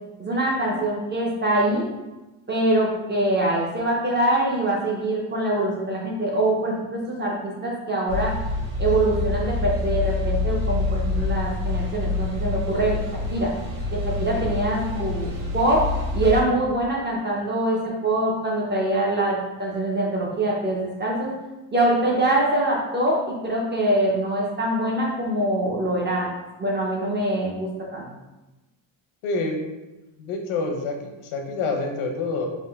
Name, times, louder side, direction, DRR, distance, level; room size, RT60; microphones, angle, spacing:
voice 1, 0.2-1.9 2.5-8.4 8.8-13.0 13.3-13.5 13.9-21.3 21.7-26.3 26.6-28.1, right 1 dB, 25° right, -3 dB, 0.4 m, -24 dB
sound 1, 8.1-16.4, left 3 dB, 75° right, 1.0 m, -27 dB
voice 2, 29.2-29.7 30.2-32.5, left 3 dB, 80° left, 3 dB, 0.8 m, -27 dB
3.6 x 2.5 x 3.3 m, 1.1 s
cardioid pair, 165°, 48 cm